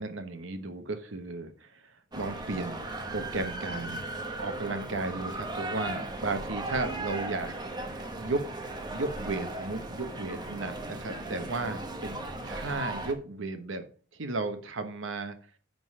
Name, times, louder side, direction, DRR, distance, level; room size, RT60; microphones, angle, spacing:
voice 1, 0.0-4.0 4.4-8.5 8.9-12.2 12.4-13.8 14.1-15.4, right 3 dB, 65° right, 8 dB, 1.1 m, -34 dB
sound 1, 2.1-13.1, right 2 dB, 20° right, 1.0 m, -37 dB
9.7 x 4.0 x 5.4 m, 0.42 s
head